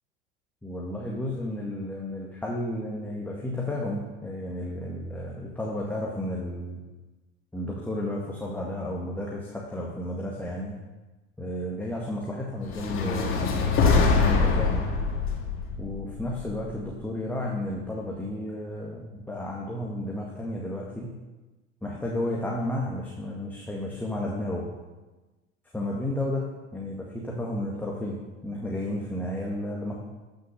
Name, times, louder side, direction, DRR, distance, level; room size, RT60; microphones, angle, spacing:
voice 1, 0.6-6.8 7.5-10.7 11.4-14.8 15.8-21.1 21.8-24.6 25.7-26.4 26.7-29.9, left 1 dB, 5° left, -3 dB, 1.9 m, -32 dB
sound 1, 12.7-16.9, left 4 dB, 35° left, 2.2 m, -24 dB
14.0 x 6.7 x 6.6 m, 1.2 s
figure-of-eight pair, 75°, 37 cm